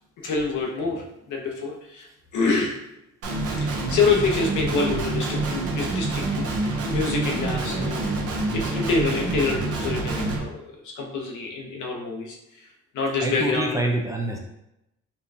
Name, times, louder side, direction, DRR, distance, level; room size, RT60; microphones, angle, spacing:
voice 1, 0.2-2.8 3.6-8.1 8.4-12.7 12.9-13.8, left 4 dB, 75° left, 1 dB, 0.8 m, -27 dB
Guitar, 3.2-10.4, right 2 dB, 50° right, 0.8 m, -27 dB
voice 2, 13.1-14.4, right 1 dB, 10° right, 0 dB, 0.4 m, -26 dB
4.2 x 2.3 x 2.7 m, 0.87 s
cardioid pair, 90°, 30 cm